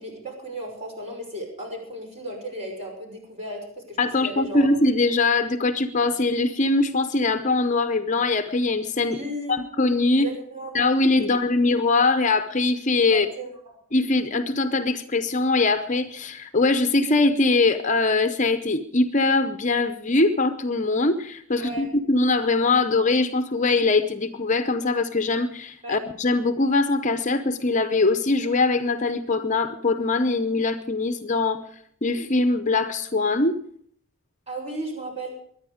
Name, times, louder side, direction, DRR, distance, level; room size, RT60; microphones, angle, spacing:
voice 1, 0.0-4.7 9.1-9.6 10.2-10.7 11.2-11.4 13.1-13.5 21.5-21.9 25.8-26.0 34.5-35.3, right 1 dB, 30° right, 1 dB, 5.8 m, -35 dB
voice 2, 4.0-9.2 9.5-10.3 10.7-13.3 13.9-31.6 32.0-33.5, left 3 dB, 35° left, 9 dB, 0.7 m, -22 dB
23.0 x 10.0 x 5.0 m, 0.65 s
head